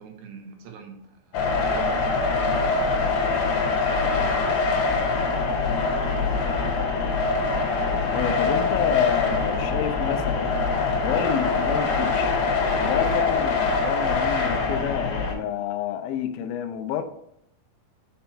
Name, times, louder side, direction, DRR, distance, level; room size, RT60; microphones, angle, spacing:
voice 1, 0.0-1.4 1.7-2.3, right 6 dB, 75° right, 2.7 m, -43 dB
sound 1, 1.3-15.3, left 4 dB, 65° left, 2.1 m, -24 dB
voice 2, 8.1-10.5 11.0-12.4 12.8-17.0, left 9 dB, 85° left, 2.1 m, -28 dB
6.6 x 4.4 x 4.3 m
omnidirectional pair, 4.9 m